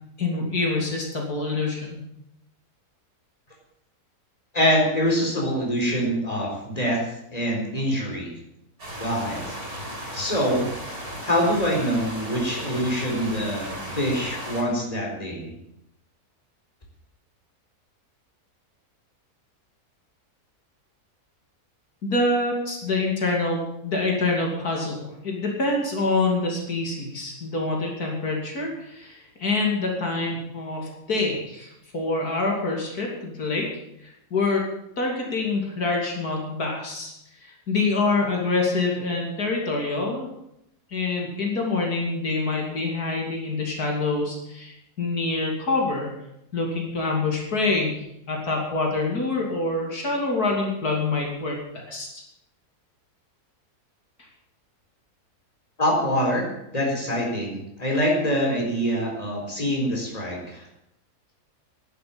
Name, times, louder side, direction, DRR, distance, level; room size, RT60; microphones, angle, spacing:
voice 1, 0.2-2.0 22.0-33.7 34.0-34.7 35.0-37.1 37.4-40.3 40.9-46.1 46.5-52.1, left 3 dB, 75° left, 0 dB, 3.3 m, -26 dB
voice 2, 4.5-7.0 7.3-8.3 9.0-9.5 10.1-10.7 11.3-15.5 55.8-56.5 56.7-60.6, equal, 25° left, -1 dB, 4.4 m, -25 dB
sound 1, 8.8-14.6, equal, 70° right, 5.9 m, -35 dB
11.5 x 11.0 x 8.8 m, 0.81 s
omnidirectional pair, 1.6 m